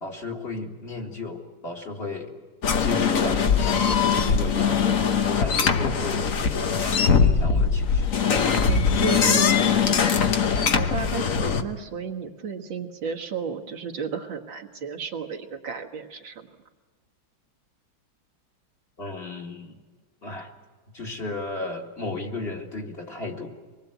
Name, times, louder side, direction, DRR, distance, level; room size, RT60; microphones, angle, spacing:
voice 1, 0.0-2.3 2.8-4.8 5.2-8.0 8.6-10.1 19.0-19.8 20.2-20.5 20.9-23.5, left 3 dB, 30° left, 1 dB, 2.2 m, -34 dB
sound 1, 2.6-11.6, left 6 dB, 50° left, 1.3 m, -21 dB
voice 2, 8.6-9.4 10.7-16.5, right 6 dB, 75° right, 2 dB, 2.3 m, -33 dB
24.5 x 20.0 x 8.1 m, 1.4 s
omnidirectional pair, 2.1 m